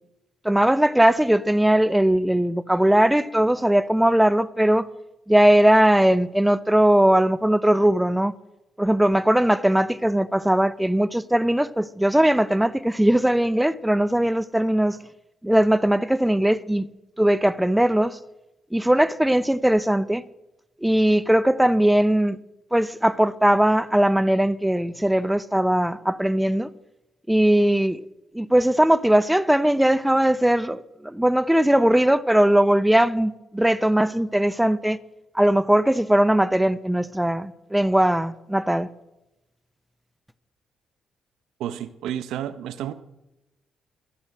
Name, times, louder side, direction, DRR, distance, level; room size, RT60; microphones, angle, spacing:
voice 1, 0.4-4.9 5.3-8.3 8.8-15.0 15.4-16.9 17.2-18.2 18.7-20.2 20.8-22.4 22.7-26.7 27.3-28.0 28.3-35.0 35.3-38.9, right 1 dB, 5° right, 0.7 m, -19 dB
voice 2, 41.6-42.9, right 11 dB, 80° right, 0.7 m, -31 dB
12.5 x 11.5 x 7.7 m
supercardioid pair, 55°, 0 cm